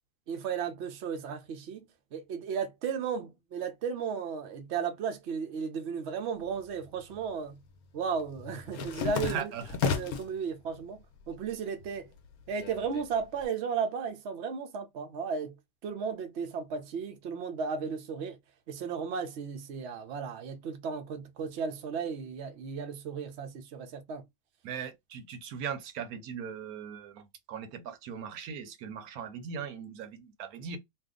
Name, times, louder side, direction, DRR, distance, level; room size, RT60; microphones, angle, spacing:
voice 1, 0.3-1.8 2.1-7.6 7.9-9.5 9.8-12.1 12.5-15.6 15.8-18.4 18.7-24.2, right 6 dB, 60° right, 0.8 m, -35 dB
sound 1, 6.5-7.3 7.6-10.4 10.8-11.5 11.8-13.4, left 7 dB, 80° left, 1.1 m, -34 dB
voice 2, 9.2-9.8 24.6-30.8, right 7 dB, 75° right, 1.1 m, -39 dB
2.7 x 2.4 x 3.6 m
omnidirectional pair, 1.6 m